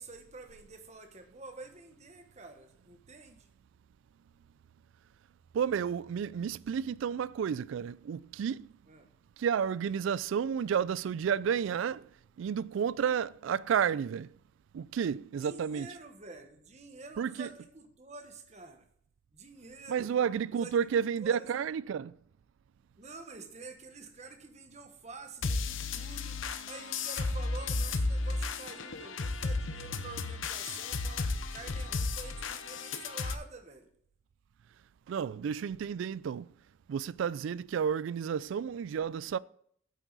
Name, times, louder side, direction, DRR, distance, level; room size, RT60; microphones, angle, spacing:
voice 1, 0.0-3.5 8.9-9.1 15.4-18.9 19.3-20.1 20.5-21.5 23.0-26.4 26.7-33.9, right 3 dB, 35° right, 1.1 m, -48 dB
voice 2, 5.5-8.7 9.4-12.1 12.4-14.3 14.7-15.9 17.2-17.5 19.9-22.1 35.1-36.5 36.9-39.4, right 7 dB, 75° right, 0.3 m, -31 dB
sound 1, 25.4-33.3, left 3 dB, 75° left, 0.8 m, -34 dB
9.3 x 7.5 x 4.0 m
head